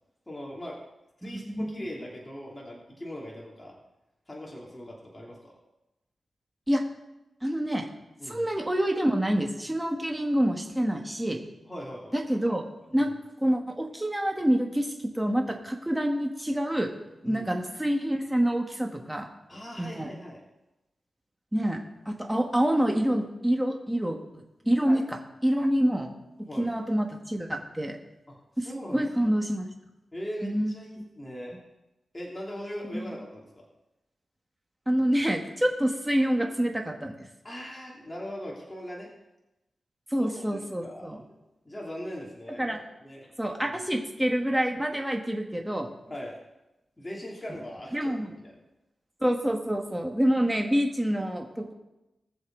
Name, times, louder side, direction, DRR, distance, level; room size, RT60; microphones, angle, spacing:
voice 1, 0.3-0.8 1.2-3.7 4.3-5.5 8.2-8.5 11.7-12.2 13.0-13.1 17.2-17.5 19.5-20.4 24.8-25.0 26.4-26.7 28.3-29.3 30.1-31.5 32.1-33.7 37.4-39.1 40.2-41.2 41.6-42.8 43.0-43.3 43.6-43.8 46.1-46.4 47.0-48.1 48.4-48.6, equal, 20° left, -3 dB, 2.9 m, -40 dB
voice 2, 1.2-1.9 6.7-6.8 7.4-7.8 8.3-11.4 12.1-12.6 12.9-13.1 13.4-16.9 17.2-19.3 19.8-20.1 21.5-21.8 22.0-25.2 25.4-26.1 26.6-28.0 28.6-28.7 28.9-29.6 30.4-31.1 32.9-33.0 34.9-37.1 40.1-41.2 42.6-42.8 43.4-45.9 47.9-48.3 49.2-51.7, equal, 10° right, 2 dB, 1.7 m, -27 dB
20.0 x 7.2 x 4.0 m, 0.95 s
wide cardioid pair, 80°, 0 cm